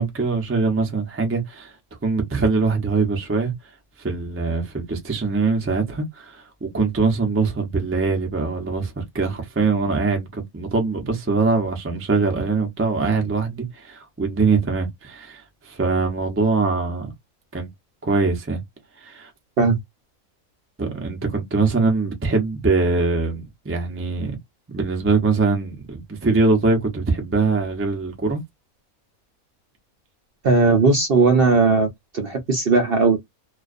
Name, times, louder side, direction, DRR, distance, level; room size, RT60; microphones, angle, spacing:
voice 1, 0.0-1.7 2.0-3.5 4.0-17.1 17.5-17.7 18.0-18.6 19.0-19.3 20.8-24.3 24.7-28.4, right 4 dB, 20° right, 0.3 m, -22 dB
voice 2, 30.4-31.9 32.1-33.2, right 4 dB, 60° right, 0.6 m, -17 dB
2.3 x 2.3 x 2.3 m
omnidirectional pair, 1.5 m